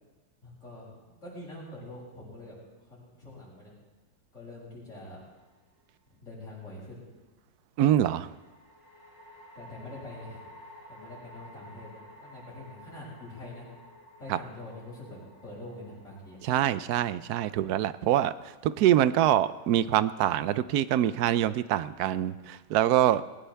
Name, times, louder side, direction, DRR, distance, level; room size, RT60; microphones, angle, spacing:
voice 1, 0.4-2.6 2.9-3.7 4.3-5.2 6.1-7.0 9.5-10.5 10.9-13.7 14.2-16.4, left 2 dB, 40° left, -7 dB, 7.5 m, -45 dB
sound 1, 5.2-5.9 8.3-19.7, equal, 10° right, 2.0 m, -53 dB
voice 2, 7.8-8.3 14.3-14.4 16.4-18.3 18.6-23.2, right 12 dB, 70° right, 15 dB, 1.1 m, -24 dB
21.5 x 18.5 x 3.5 m, 1.2 s
omnidirectional pair, 1.9 m